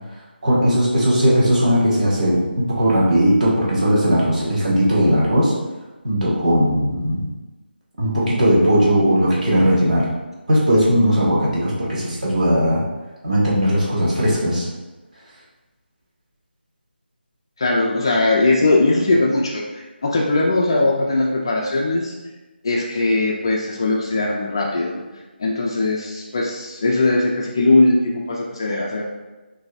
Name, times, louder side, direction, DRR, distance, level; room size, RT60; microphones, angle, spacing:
voice 1, 0.4-5.5 6.0-7.3 8.0-10.1 10.5-12.8 13.2-14.7, equal, 45° right, -6 dB, 1.4 m, -18 dB
voice 2, 17.6-22.1 22.6-25.0 25.4-29.0, left 2 dB, 25° left, -2 dB, 0.3 m, -19 dB
6.1 x 2.6 x 2.3 m, 1.1 s
figure-of-eight pair, 170°, 6 cm